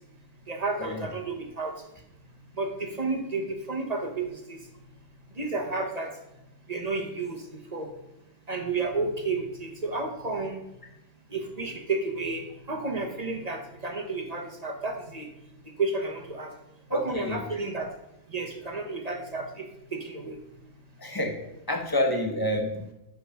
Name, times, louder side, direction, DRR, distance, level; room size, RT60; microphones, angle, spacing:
voice 1, 0.5-1.7 2.6-4.6 5.4-6.1 6.7-7.4 7.7-7.9 8.5-10.6 11.3-15.3 15.8-16.5 16.9-17.9 18.3-19.6 19.9-20.4, right 3 dB, 35° right, 2 dB, 1.1 m, -31 dB
voice 2, 16.9-17.4 21.0-21.3 21.7-22.8, equal, 20° left, 2 dB, 1.1 m, -28 dB
7.9 x 5.3 x 5.7 m, 0.90 s
omnidirectional pair, 1.3 m